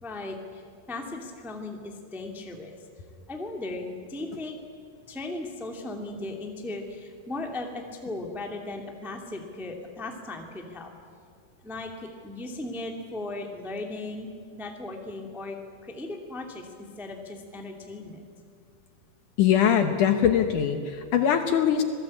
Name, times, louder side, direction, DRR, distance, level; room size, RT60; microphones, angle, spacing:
voice 1, 0.0-0.6 0.9-2.8 3.3-4.6 5.1-10.9 11.6-15.6 15.8-16.7 17.0-18.2, left 2 dB, ahead, 2 dB, 1.3 m, -37 dB
voice 2, 19.4-21.8, left 9 dB, 65° left, 7 dB, 2.3 m, -22 dB
26.5 x 18.5 x 8.6 m, 2.3 s
omnidirectional pair, 4.4 m